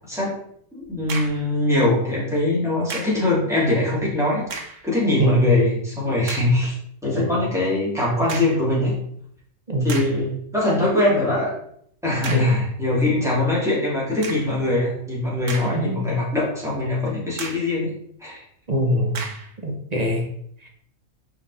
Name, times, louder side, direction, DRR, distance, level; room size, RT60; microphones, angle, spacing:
voice 1, 0.7-4.4 4.8-6.7 7.0-8.9 9.8-11.5 12.0-17.9 18.2-18.4, left 2 dB, ahead, -7 dB, 2.8 m, -22 dB
sound 1, 0.8-1.5 2.9-3.3 4.4-4.9 5.5-5.6 6.3-6.6 8.3-8.7 9.4-9.5 9.9-10.3 12.2-12.6 14.2-14.6 15.2-16.0 16.4-16.5 17.4-17.8 19.1-19.5, right 4 dB, 65° right, 1.3 m, -34 dB
voice 2, 5.2-5.5 7.2-7.3 9.7-10.0 12.3-12.5 15.7-16.1 18.7-19.2 19.6-20.3 20.6-20.7, equal, 30° right, 0 dB, 1.2 m, -22 dB
5.4 x 4.7 x 4.1 m, 0.66 s
omnidirectional pair, 1.4 m